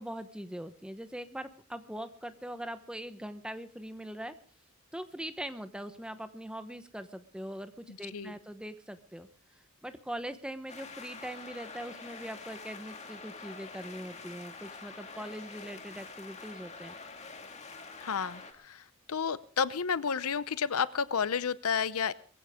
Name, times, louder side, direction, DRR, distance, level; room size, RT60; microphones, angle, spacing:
voice 1, 0.0-4.3 4.9-9.3 9.8-16.9, right 1 dB, 5° right, 10 dB, 1.0 m, -41 dB
voice 2, 7.9-8.3 18.0-22.1, left 6 dB, 85° left, 16 dB, 0.8 m, -31 dB
sound 1, 10.7-18.5, left 4 dB, 30° left, 2.1 m, -46 dB
22.5 x 15.5 x 3.7 m, 0.43 s
head